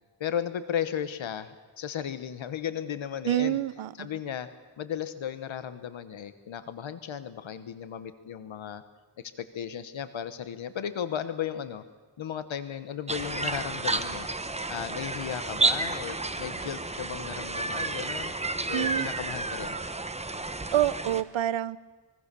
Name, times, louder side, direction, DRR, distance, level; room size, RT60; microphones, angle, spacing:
voice 1, 0.2-3.6 4.0-4.5 4.8-8.8 9.4-11.8 12.2-14.3 14.7-18.3 18.7-19.8, left 9 dB, 85° left, 12 dB, 1.2 m, -35 dB
voice 2, 3.2-4.1 18.7-19.1 20.7-21.8, right 12 dB, 90° right, 17 dB, 0.8 m, -27 dB
sound 1, 13.1-21.2, right 3 dB, 15° right, 1.2 m, -31 dB
25.5 x 22.5 x 6.9 m, 1.4 s
wide cardioid pair, 100°, 45 cm